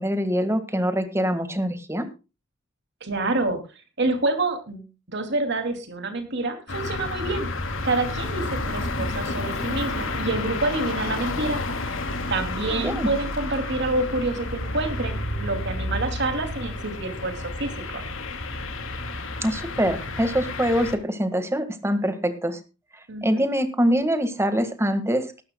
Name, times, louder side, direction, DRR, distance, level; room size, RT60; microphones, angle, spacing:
voice 1, 0.0-2.1 12.7-13.1 19.4-22.6 23.2-25.4, equal, 15° right, 10 dB, 1.7 m, -24 dB
voice 2, 3.0-3.6 4.0-7.5 7.8-11.6 12.3-18.0 23.1-23.4, right 2 dB, 60° right, 7 dB, 2.6 m, -27 dB
sound 1, 6.7-21.0, left 2 dB, 80° left, 2.5 m, -30 dB
18.5 x 13.0 x 2.2 m, 0.30 s
head